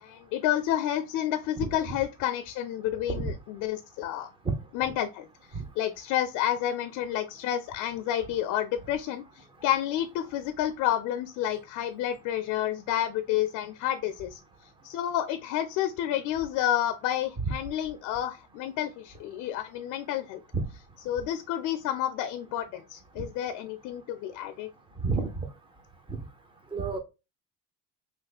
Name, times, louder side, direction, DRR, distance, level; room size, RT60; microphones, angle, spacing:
voice 1, 0.0-4.3 4.7-5.3 5.8-14.4 14.8-20.4 21.1-24.7, left 11 dB, 60° left, 0.4 m, -30 dB
voice 2, 1.6-2.0 3.1-3.3 4.4-4.5 5.5-5.6 17.4-17.5 20.5-20.7 25.0-25.5 26.1-26.2 26.7-27.0, right 4 dB, 15° right, 0.5 m, -29 dB
3.3 x 3.2 x 2.3 m
cardioid pair, 155°, 35 cm